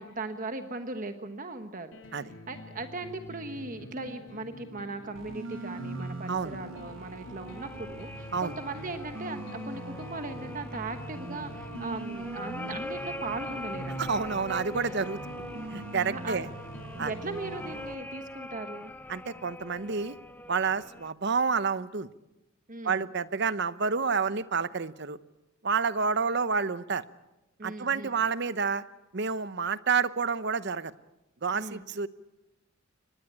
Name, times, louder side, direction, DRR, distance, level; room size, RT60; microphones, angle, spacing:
voice 1, 0.0-2.0 2.5-14.4 16.1-16.4 16.9-18.9 22.7-23.0 27.6-28.1 31.5-31.8, right 3 dB, 40° right, 7 dB, 1.2 m, -38 dB
sound 1, 1.9-17.8, equal, 80° left, 3.6 m, -45 dB
sound 2, 5.2-18.0, right 2 dB, 75° right, 1.5 m, -43 dB
sound 3, 6.7-21.1, left 1 dB, 10° left, 0.8 m, -43 dB
voice 2, 14.0-15.2 15.7-16.5 17.0-17.1 19.1-20.2 20.5-22.1 22.8-25.2 25.6-27.0 27.6-28.8 29.1-30.9 31.4-32.1, right 5 dB, 55° right, 14 dB, 0.9 m, -29 dB
24.5 x 20.0 x 8.7 m, 0.99 s
head